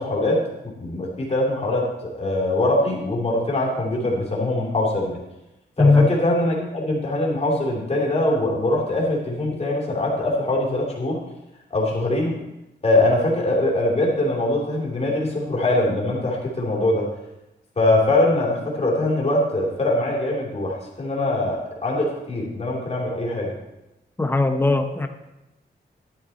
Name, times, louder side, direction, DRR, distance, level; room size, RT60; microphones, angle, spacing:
voice 1, 0.0-5.2 5.8-11.2 11.7-12.4 12.8-17.1 17.8-23.5, left 1 dB, 35° left, -3 dB, 2.7 m, -22 dB
voice 2, 5.8-6.1 24.2-25.1, left 3 dB, 10° left, 6 dB, 0.8 m, -18 dB
11.5 x 9.2 x 4.1 m, 0.96 s
wide cardioid pair, 145°, 18 cm